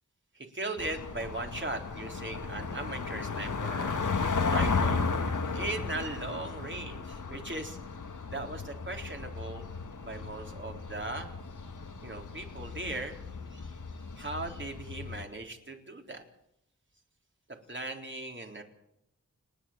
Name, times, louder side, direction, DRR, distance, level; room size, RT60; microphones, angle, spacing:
voice 1, 0.4-4.1 4.4-5.0 5.5-7.8 8.3-9.7 10.0-11.3 12.0-13.2 13.5-13.7 14.2-16.2 17.7-18.6, right 2 dB, 40° right, 3 dB, 3.8 m, -38 dB
sound 1, 0.8-15.2, left 4 dB, 80° left, 1.8 m, -34 dB
29.5 x 10.5 x 8.6 m, 0.80 s
wide cardioid pair, 80°, 31 cm